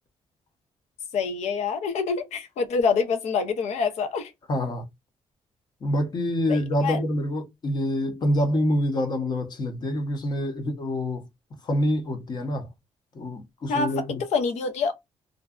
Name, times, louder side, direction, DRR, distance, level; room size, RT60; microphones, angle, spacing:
voice 1, 1.1-4.3 6.5-7.0 13.7-14.9, left 5 dB, 80° left, 0.7 m, -26 dB
voice 2, 4.5-4.8 5.8-11.2 11.6-12.7 13.1-14.2, left 1 dB, 40° left, 0.7 m, -26 dB
2.6 x 2.2 x 2.3 m
cardioid pair, 135°, 11 cm